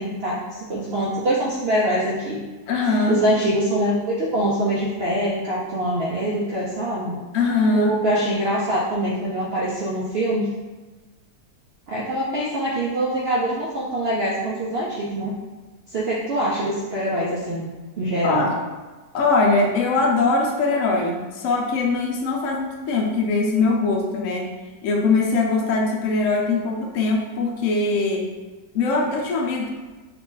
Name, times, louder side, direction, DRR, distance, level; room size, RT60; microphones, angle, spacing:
voice 1, 0.0-2.4 3.1-7.2 7.7-10.5 11.9-15.3 15.9-17.6 18.0-18.5, right 1 dB, 85° right, -5 dB, 0.5 m, -24 dB
voice 2, 2.7-3.2 7.3-7.9 18.2-18.5 19.1-24.5 24.8-28.3 28.7-29.7, left 3 dB, 65° left, 0 dB, 0.9 m, -21 dB
2.9 x 2.4 x 3.8 m, 1.3 s
omnidirectional pair, 1.7 m